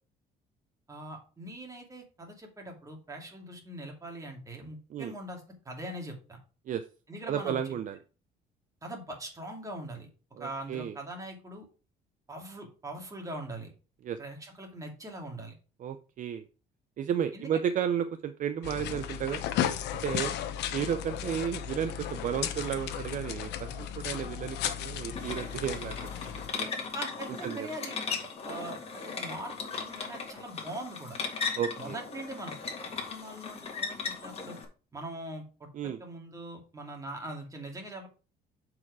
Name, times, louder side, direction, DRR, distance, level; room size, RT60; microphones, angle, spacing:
voice 1, 0.9-6.4 7.1-7.6 8.8-10.1 10.4-11.7 12.3-13.7 14.2-15.5 17.3-17.5 26.9-28.2 28.4-31.2 31.8-34.6 34.9-38.1, right 1 dB, 20° right, 1 dB, 2.5 m, -42 dB
voice 2, 7.3-8.0 10.4-11.0 14.0-14.2 15.8-16.5 17.0-19.4 20.0-20.3 20.7-26.7 27.4-27.7 31.6-32.0 35.7-36.0, right 9 dB, 50° right, 10 dB, 0.6 m, -33 dB
sound 1, 18.6-26.5, left 10 dB, 85° left, 1.0 m, -35 dB
sound 2, 25.2-34.6, left 5 dB, 35° left, 1.9 m, -37 dB
7.3 x 4.8 x 4.8 m, 0.35 s
cardioid pair, 110°, 17 cm